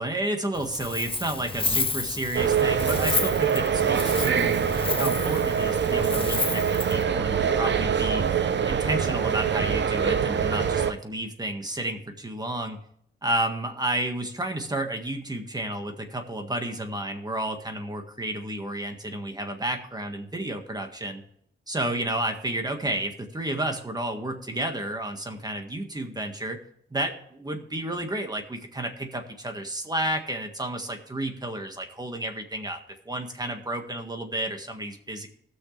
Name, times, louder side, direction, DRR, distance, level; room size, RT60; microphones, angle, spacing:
voice 1, 0.0-8.3 8.6-12.8 13.2-21.2 21.7-26.6 26.9-32.8 33.0-35.3, right 1 dB, 20° right, 5 dB, 1.7 m, -31 dB
Wind, 0.5-7.0, left 4 dB, 25° left, 0.7 m, -31 dB
sound 1, 2.3-10.9, right 7 dB, 60° right, 0.8 m, -24 dB
19.5 x 6.4 x 3.3 m, 0.70 s
wide cardioid pair, 110°, 21 cm